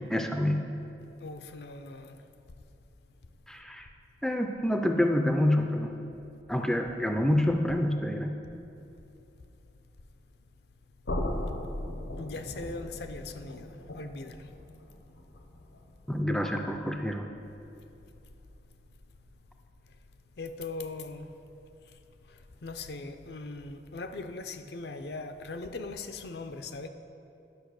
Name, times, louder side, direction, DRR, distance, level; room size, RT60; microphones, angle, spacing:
voice 1, 0.1-0.7 3.5-3.9 4.2-5.9 6.5-8.4 16.1-17.3, left 1 dB, 5° left, 0.4 m, -27 dB
voice 2, 1.2-2.2 12.2-14.5 20.4-21.3 22.3-26.9, left 3 dB, 65° left, 0.5 m, -40 dB
sound 1, 11.0-16.9, left 1 dB, 80° left, 0.9 m, -38 dB
10.5 x 5.4 x 6.4 m
head